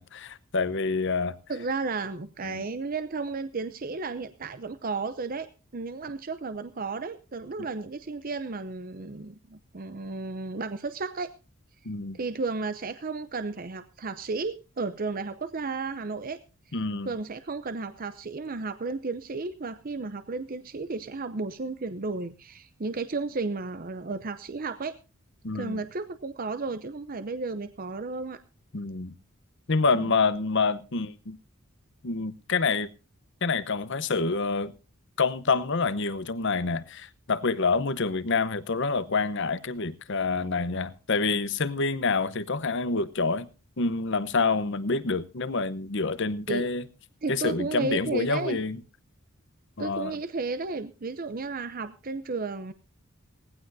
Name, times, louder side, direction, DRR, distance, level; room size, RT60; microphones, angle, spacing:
voice 1, 0.0-1.4 2.4-2.6 11.8-12.2 16.7-17.1 25.4-25.8 28.7-29.1 29.7-31.4 32.0-32.9 33.4-34.7 35.2-43.5 43.8-46.8 47.3-48.8 49.8-50.2, left 4 dB, 60° left, 0.9 m, -27 dB
voice 2, 1.5-11.3 12.1-16.4 17.0-25.0 25.5-28.4 29.9-30.2 46.5-46.7 47.2-48.6 49.8-52.7, right 3 dB, 40° right, 0.7 m, -33 dB
19.0 x 15.5 x 2.7 m
head